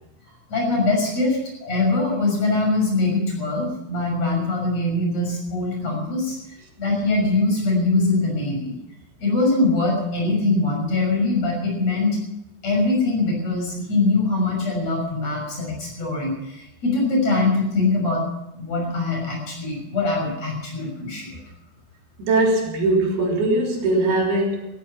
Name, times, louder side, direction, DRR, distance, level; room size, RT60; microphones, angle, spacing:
voice 1, 0.5-6.4 6.8-8.7 9.2-12.2 12.6-18.3 18.6-21.4, left 2 dB, 45° left, 0 dB, 7.4 m, -22 dB
voice 2, 22.2-24.7, right 2 dB, 90° right, 0 dB, 5.4 m, -20 dB
16.5 x 14.5 x 5.8 m, 0.91 s
omnidirectional pair, 4.4 m